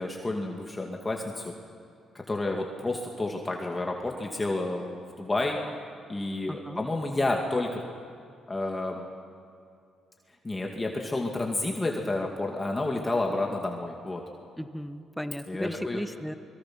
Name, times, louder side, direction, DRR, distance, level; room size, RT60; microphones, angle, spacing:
voice 1, 0.0-1.5 2.1-5.6 6.1-7.8 8.5-9.0 10.4-14.2 15.5-16.0, left 2 dB, 20° left, 1 dB, 2.3 m, -30 dB
voice 2, 6.5-6.8 14.6-16.3, equal, ahead, 10 dB, 1.0 m, -35 dB
25.5 x 22.0 x 6.2 m, 2.5 s
cardioid pair, 90°, 0 cm